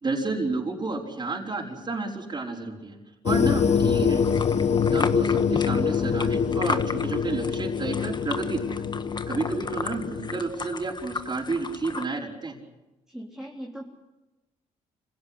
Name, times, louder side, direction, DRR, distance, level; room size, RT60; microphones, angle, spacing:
voice 1, 0.0-3.0 3.2-4.2 4.7-8.9 9.3-12.6, right 3 dB, 30° right, -2 dB, 5.1 m, -31 dB
sound 1, 3.3-10.4, left 7 dB, 50° left, 1.0 m, -25 dB
sound 2, 4.1-12.0, left 4 dB, 30° left, 1.6 m, -35 dB
voice 2, 13.1-13.8, right 1 dB, 5° right, -1 dB, 3.7 m, -37 dB
26.0 x 17.0 x 9.9 m, 1.1 s
cardioid pair, 75°, 14 cm